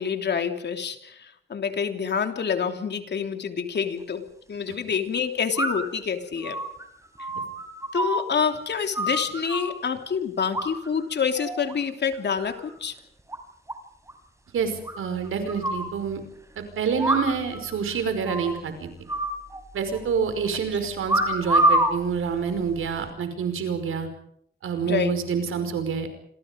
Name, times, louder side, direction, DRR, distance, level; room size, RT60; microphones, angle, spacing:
voice 1, 0.0-6.6 7.9-13.0 24.8-25.2, left 6 dB, 55° left, 6 dB, 3.2 m, -27 dB
sound 1, 3.8-3.9 5.6-6.0 6.4-8.5 8.7-9.8 10.5-11.1 11.4-11.7 12.1-12.7 13.0-13.1 13.3-13.4 13.7-13.8 14.1-14.2 14.9-15.9 17.0-17.6 17.8-17.9 18.3-18.6 19.1-20.0 21.1-21.9 22.7-23.0, right 1 dB, 15° right, 5.3 m, -26 dB
voice 2, 14.5-16.2 16.6-18.9 19.7-24.1 24.6-26.1, right 6 dB, 85° right, 8 dB, 5.4 m, -27 dB
27.5 x 27.0 x 5.3 m, 0.70 s
cardioid pair, 105°, 21 cm